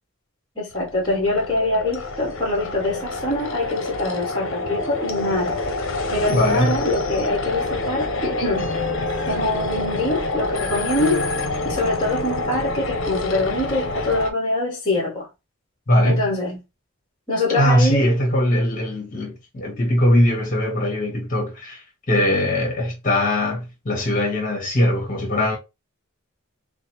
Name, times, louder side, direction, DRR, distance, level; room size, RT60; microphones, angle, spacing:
voice 1, 0.6-5.6 6.1-8.7 9.2-11.3 11.6-15.3 16.0-16.6 17.3-18.0, left 2 dB, 20° left, 1.3 m, -24 dB
sound 1, 0.7-14.3, left 2 dB, 65° left, 0.8 m, -27 dB
voice 2, 6.3-6.8 15.9-16.3 17.6-25.6, left 1 dB, 40° left, 1.4 m, -21 dB
5.0 x 2.1 x 2.9 m
head